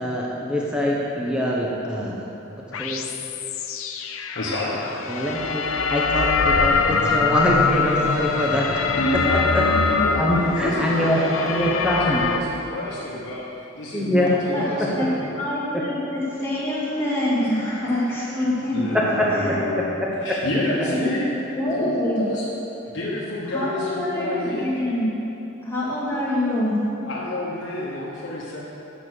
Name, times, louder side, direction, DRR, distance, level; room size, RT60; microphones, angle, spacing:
voice 1, 0.0-2.2 2.8-3.0 5.1-5.6 5.9-8.7 9.5-9.6 10.2-12.2 13.9-14.4 19.2-19.3, equal, 5° right, -4 dB, 0.9 m, -23 dB
sound 1, 2.7-12.4, left 5 dB, 90° left, 0.6 m, -23 dB
voice 2, 4.3-4.8 9.0-9.4 9.9-13.4 13.7-15.2 18.7-19.9 20.2-21.4 21.7-22.4 22.9-24.7 27.1-28.6, left 1 dB, 65° left, -7 dB, 1.4 m, -29 dB
voice 3, 15.4-18.9 19.4-19.5 20.6-22.2 23.5-25.1 25.6-26.8, left 1 dB, 10° left, -8 dB, 2.2 m, -25 dB
8.5 x 7.0 x 6.3 m, 3.0 s
head